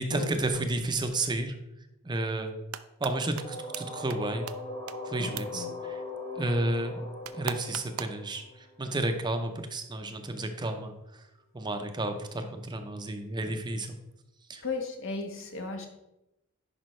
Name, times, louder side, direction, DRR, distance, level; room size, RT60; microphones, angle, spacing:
voice 1, 0.0-1.5 2.0-2.6 3.0-4.5 5.0-6.0 6.3-11.3 11.5-14.0 14.5-14.6, right 2 dB, 20° right, 6 dB, 0.6 m, -32 dB
sound 1, 2.5-3.1 3.4-3.5 3.7-3.8 4.1-4.2 4.5-4.6 4.9-5.0 5.4-5.5 7.2-8.2, right 10 dB, 80° right, 0.4 m, -36 dB
sound 2, 3.4-9.1, left 2 dB, 35° left, 2.3 m, -40 dB
voice 2, 5.2-5.7 14.6-15.9, left 4 dB, 65° left, 4 dB, 1.2 m, -35 dB
10.5 x 5.1 x 3.2 m, 0.91 s
head